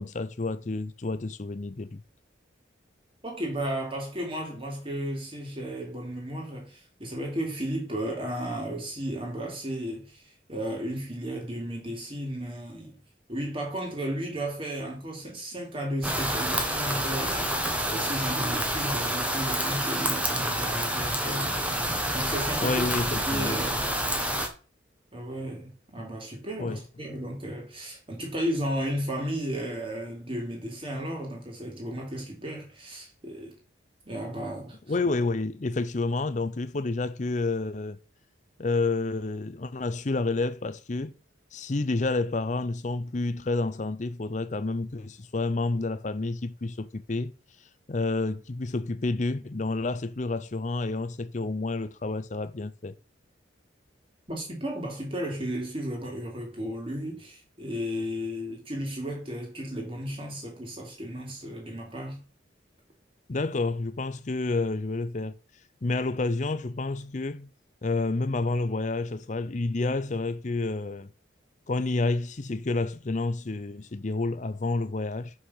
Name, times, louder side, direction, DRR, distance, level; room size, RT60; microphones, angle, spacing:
voice 1, 0.0-2.0 22.6-23.6 26.6-26.8 34.9-38.0 38.6-41.1 41.5-47.3 47.9-52.9 63.3-65.4 65.8-67.5 67.8-71.1 71.7-75.3, left 3 dB, 40° left, 0.6 m, -29 dB
voice 2, 3.2-13.0 13.3-17.5 17.9-21.6 22.1-22.9 23.3-24.0 25.1-33.5 34.0-34.8 54.3-62.2, equal, 30° right, 2.8 m, -34 dB
sound 1, 16.0-24.5, right 1 dB, 5° right, 1.2 m, -28 dB
6.5 x 5.9 x 5.6 m
head